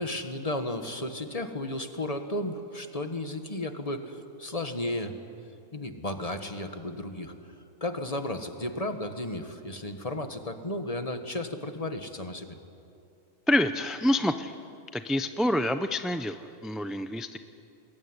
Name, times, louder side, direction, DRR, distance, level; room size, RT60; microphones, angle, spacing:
voice 1, 0.0-5.1 5.7-7.3 7.8-12.6, left 1 dB, 30° left, 7 dB, 1.7 m, -34 dB
voice 2, 13.5-14.5 14.9-17.4, left 1 dB, ahead, 9 dB, 0.4 m, -27 dB
27.5 x 21.5 x 9.8 m, 2.6 s
omnidirectional pair, 1.4 m